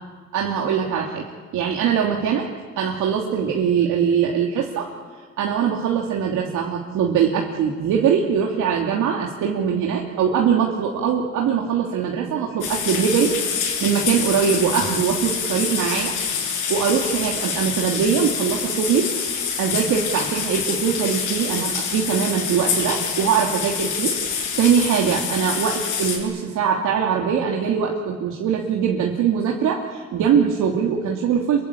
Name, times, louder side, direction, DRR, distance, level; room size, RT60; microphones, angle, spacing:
voice 1, 0.3-1.2 1.5-2.5 2.8-4.9 5.4-16.1 16.7-19.1 19.6-31.7, right 7 dB, 85° right, -1 dB, 2.9 m, -22 dB
sound 1, 12.6-26.2, left 6 dB, 85° left, 7.8 m, -26 dB
27.5 x 23.5 x 8.7 m, 1.5 s
cardioid pair, 90°, 30 cm